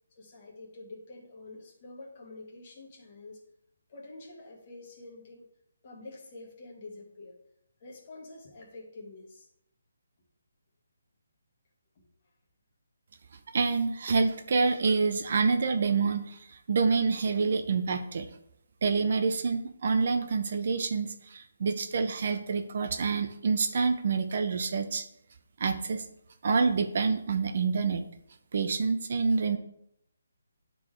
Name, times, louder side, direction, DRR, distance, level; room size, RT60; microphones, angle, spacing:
voice 1, 0.1-3.4 3.9-5.5 5.8-7.4 7.8-9.5 11.9-12.0, left 2 dB, 25° left, -1 dB, 1.4 m, -47 dB
voice 2, 13.5-18.3 18.8-25.1 25.6-26.1 26.4-28.0 28.5-29.6, right 4 dB, 40° right, 7 dB, 0.5 m, -27 dB
11.0 x 3.8 x 3.2 m, 0.77 s
hypercardioid pair, 175°, 0 cm